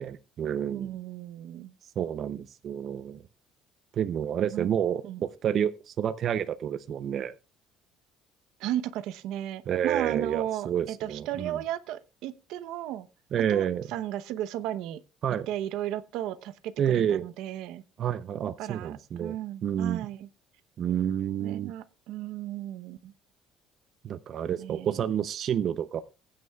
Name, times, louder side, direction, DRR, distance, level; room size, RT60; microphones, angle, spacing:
voice 1, 0.0-0.9 2.0-3.2 3.9-7.3 9.7-11.6 13.3-13.9 15.2-15.5 16.8-17.2 18.0-19.4 19.6-20.1 20.8-21.7 24.0-26.0, right 9 dB, 45° right, 0.6 m, -29 dB
voice 2, 0.7-1.7 4.4-4.7 5.0-5.2 8.6-13.1 13.4-15.0 15.5-17.8 18.6-20.3 21.4-23.1 24.6-25.0, right 12 dB, 75° right, 0.8 m, -35 dB
21.5 x 9.5 x 2.3 m
cardioid pair, 145°, 0 cm